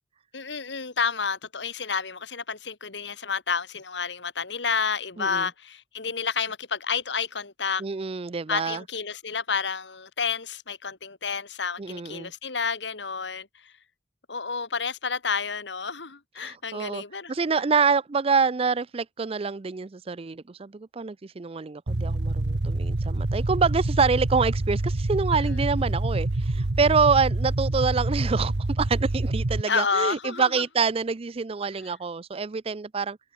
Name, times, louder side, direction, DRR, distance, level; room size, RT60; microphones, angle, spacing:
voice 1, 0.3-7.8 8.5-13.7 14.3-17.6 25.5-25.6 29.7-30.6 31.8-31.9, left 5 dB, 85° left, 2.2 m, -30 dB
voice 2, 5.2-5.5 7.8-8.8 11.8-12.3 16.4-17.0 17.3-33.2, right 5 dB, 35° right, 0.5 m, -26 dB
sound 1, 21.9-29.6, right 2 dB, 70° right, 1.1 m, -26 dB
head